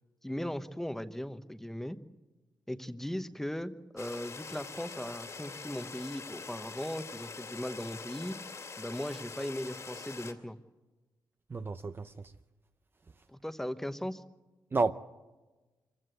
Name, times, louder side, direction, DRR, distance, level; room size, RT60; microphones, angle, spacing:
voice 1, 0.2-2.0 2.7-8.4 8.8-10.6 13.3-14.2, equal, 5° left, 1.0 m, -38 dB
sound 1, 4.0-10.3, left 4 dB, 45° left, 2.5 m, -44 dB
voice 2, 11.5-12.3 14.7-14.9, right 3 dB, 30° right, 0.6 m, -31 dB
25.5 x 15.5 x 8.2 m
wide cardioid pair, 130°, 7 cm